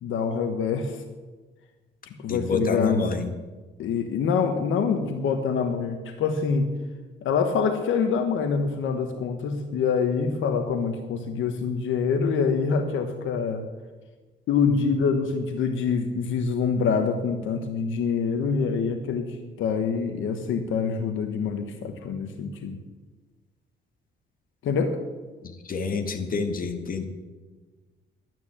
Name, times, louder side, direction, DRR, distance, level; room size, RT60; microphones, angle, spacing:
voice 1, 0.0-1.0 2.1-3.1 3.8-6.7 7.2-13.7 14.5-22.8 24.6-25.0, left 5 dB, 80° left, 7 dB, 1.3 m, -25 dB
voice 2, 2.3-3.3 25.4-27.0, left 4 dB, 45° left, 6 dB, 2.0 m, -28 dB
12.0 x 9.4 x 8.6 m, 1.3 s
cardioid pair, 90°, 20 cm